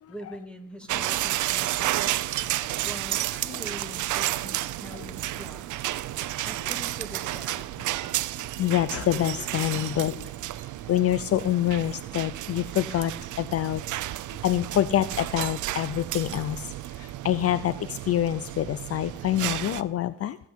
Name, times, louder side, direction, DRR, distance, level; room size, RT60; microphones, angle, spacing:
voice 1, 0.1-5.6 6.4-7.9, equal, 5° left, 6 dB, 2.1 m, -43 dB
sound 1, 0.9-19.8, right 14 dB, 75° right, 0.7 m, -32 dB
voice 2, 8.6-10.3 10.6-13.8 14.4-20.4, left 12 dB, 50° left, 16 dB, 0.5 m, -26 dB
18.0 x 7.6 x 8.0 m, 0.78 s
cardioid pair, 90°, 30 cm